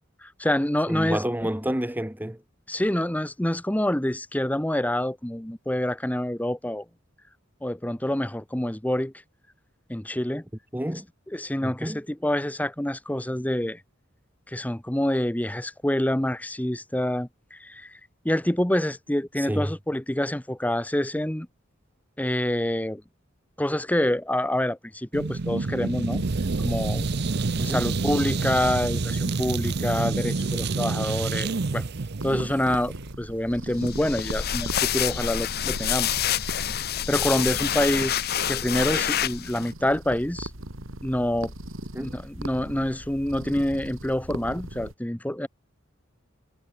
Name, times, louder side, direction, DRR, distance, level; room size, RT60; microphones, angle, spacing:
voice 1, 0.2-1.2 2.7-6.8 7.6-9.1 9.9-10.4 11.3-13.8 14.5-17.9 18.2-21.5 22.2-23.0 23.6-26.2 26.6-27.1 27.6-31.9 32.2-36.1 36.5-38.2 38.5-40.5 41.0-41.5 42.0-45.5, left 1 dB, 10° left, 1.0 m, -27 dB
voice 2, 0.9-2.4 10.7-11.1 11.6-12.0 19.4-19.7 27.6-27.9 41.9-42.2, equal, 10° right, 1.8 m, -29 dB
sound 1, 25.1-33.1, right 3 dB, 55° right, 0.7 m, -28 dB
sound 2, 32.2-44.9, right 1 dB, 85° right, 4.8 m, -40 dB
sound 3, 33.8-39.7, left 10 dB, 55° left, 0.8 m, -27 dB
head